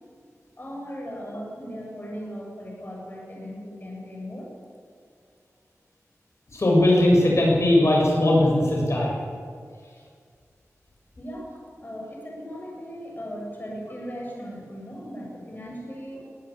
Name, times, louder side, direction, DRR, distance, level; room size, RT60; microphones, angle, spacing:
voice 1, 0.6-4.5 11.2-11.5 11.8-16.2, equal, 35° left, -2 dB, 6.7 m, -37 dB
voice 2, 6.5-9.1, left 1 dB, 60° left, -2 dB, 7.0 m, -19 dB
22.0 x 13.5 x 9.9 m, 2.1 s
wide cardioid pair, 70°, 5 cm